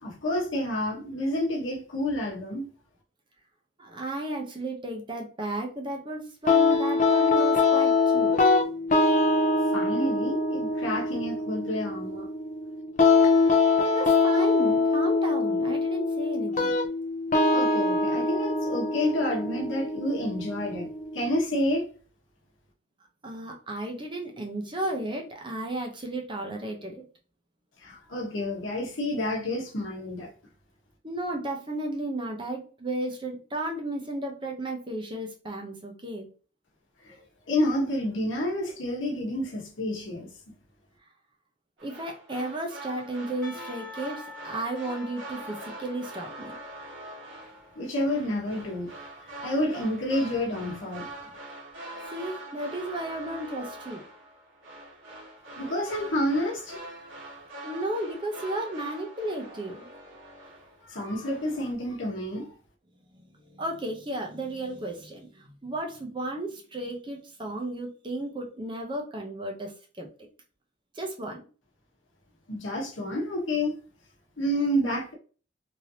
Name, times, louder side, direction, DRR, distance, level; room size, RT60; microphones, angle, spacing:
voice 1, 0.0-2.7 9.7-12.3 17.5-21.8 27.8-30.3 37.0-37.2 37.5-40.3 47.8-48.9 49.2-51.1 55.6-56.8 60.8-62.5 72.5-73.8 74.4-75.1, left 1 dB, 75° left, 1.0 m, -29 dB
voice 2, 3.8-8.3 13.8-16.8 23.2-27.0 31.0-36.3 41.8-46.6 52.1-54.0 57.6-59.9 63.1-70.1 70.9-71.5, right 1 dB, 25° right, 0.5 m, -34 dB
sound 1, 6.5-21.4, left 3 dB, 40° left, 0.4 m, -24 dB
sound 2, 41.8-60.9 61.2-61.7, right 1 dB, 80° right, 1.3 m, -43 dB
Percussion / Church bell, 43.4-47.8, left 4 dB, 5° left, 1.2 m, -47 dB
3.2 x 2.7 x 2.7 m
head